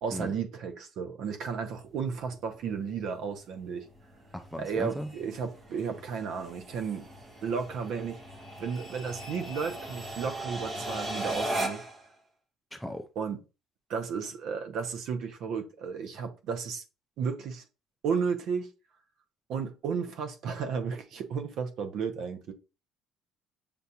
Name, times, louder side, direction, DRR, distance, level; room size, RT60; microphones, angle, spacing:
voice 1, 0.0-3.8 4.6-7.1 7.4-8.2 8.6-11.8 13.1-13.4 13.9-16.8 17.2-17.6 18.0-18.7 19.5-22.5, right 6 dB, 55° right, 0.7 m, -33 dB
sound 1, 1.8-12.0, right 1 dB, 20° right, 0.8 m, -39 dB
voice 2, 4.3-5.1 12.7-13.1, equal, ahead, 0.3 m, -37 dB
6.8 x 2.4 x 2.8 m
cardioid pair, 155°, 0 cm